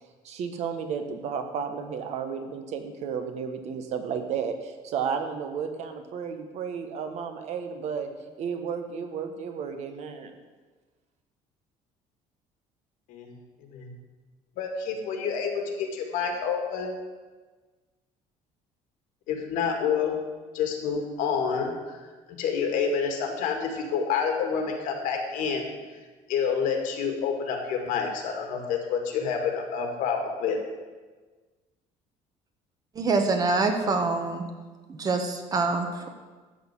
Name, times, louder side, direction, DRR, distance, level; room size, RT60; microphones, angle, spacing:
voice 1, 0.2-8.1 8.4-10.3, right 6 dB, 55° right, 6 dB, 1.2 m, -33 dB
voice 2, 14.6-16.9 19.3-20.2 20.5-22.0 22.4-25.6 26.3-30.6, left 6 dB, 75° left, 3 dB, 2.1 m, -28 dB
voice 3, 33.0-34.4 35.0-36.1, right 3 dB, 25° right, 5 dB, 1.2 m, -25 dB
13.0 x 4.4 x 8.2 m, 1.3 s
cardioid pair, 165°, 14 cm